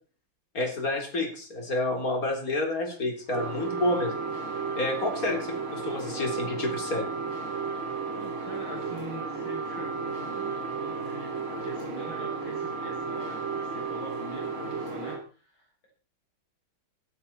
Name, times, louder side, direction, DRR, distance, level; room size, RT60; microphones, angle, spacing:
voice 1, 0.5-4.2 4.8-7.1, left 2 dB, 45° left, 2 dB, 4.3 m, -29 dB
sound 1, 3.3-15.2, right 5 dB, 90° right, 3.8 m, -33 dB
voice 2, 7.7-15.9, left 1 dB, 70° left, -1 dB, 6.2 m, -44 dB
17.0 x 13.5 x 4.4 m, 0.38 s
omnidirectional pair, 2.2 m